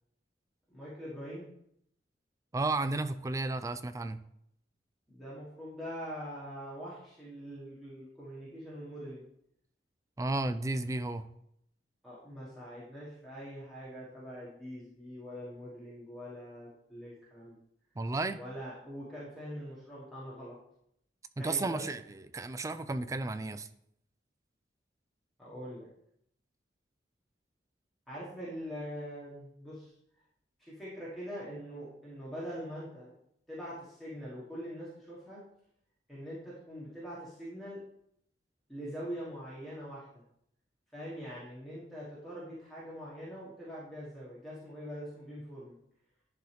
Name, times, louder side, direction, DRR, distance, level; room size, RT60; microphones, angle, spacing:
voice 1, 0.7-1.5 5.1-9.2 12.0-17.6 18.0-18.1 18.4-20.6 21.4-21.9 25.4-25.9 28.1-29.9 30.6-33.1 33.5-35.4 36.1-37.8 38.7-40.2 40.9-45.8, equal, ahead, -9 dB, 1.5 m, -43 dB
voice 2, 2.5-4.2 10.2-11.3 18.0-18.4 21.4-22.0 22.3-23.7, right 2 dB, 20° right, 11 dB, 0.3 m, -33 dB
10.5 x 3.8 x 3.4 m, 0.74 s
head